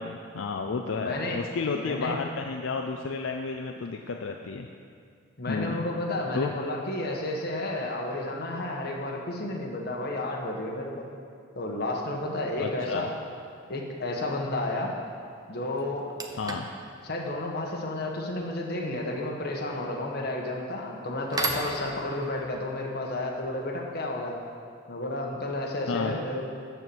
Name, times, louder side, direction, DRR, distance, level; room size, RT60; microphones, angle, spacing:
voice 1, 0.0-4.7 5.5-5.9 6.3-6.6 12.6-13.1 16.4-16.7 25.9-26.2, left 4 dB, 80° left, 3 dB, 0.5 m, -32 dB
voice 2, 1.0-1.4 1.7-2.2 5.4-11.0 11.5-13.1 13.7-14.9 15.5-16.1 17.0-24.4 24.9-26.4, left 2 dB, 55° left, 0 dB, 1.4 m, -31 dB
sound 1, 12.9-13.1 15.2-15.3 15.8-24.5, right 2 dB, 20° right, 0.7 m, -39 dB
12.0 x 4.5 x 7.0 m, 2.3 s
head